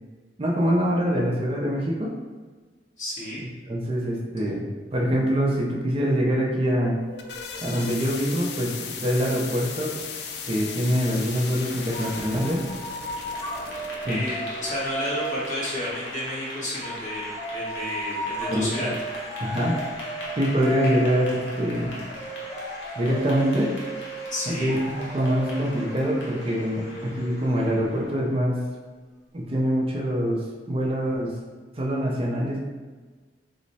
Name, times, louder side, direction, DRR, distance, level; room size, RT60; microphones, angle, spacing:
voice 1, 0.4-2.1 3.7-4.6 4.9-7.0 7.6-10.0 10.5-12.7 14.0-14.2 18.5-18.9 19.4-19.8 20.4-22.0 23.0-23.7 24.5-28.6 29.3-31.3 31.8-32.6, equal, 30° right, -3 dB, 0.4 m, -24 dB
voice 2, 3.0-3.4 14.0-17.2 17.5-18.9 20.8-20.9 24.3-24.8, left 1 dB, 45° left, -9 dB, 1.3 m, -31 dB
sound 1, 6.9-14.2, left 5 dB, 65° left, 0.4 m, -37 dB
sound 2, 11.9-16.3 16.8-28.2, right 1 dB, 20° left, 0.7 m, -35 dB
Clapping / Applause, 12.9-28.2, left 1 dB, 85° left, 0.8 m, -41 dB
3.1 x 2.1 x 4.0 m, 1.3 s
head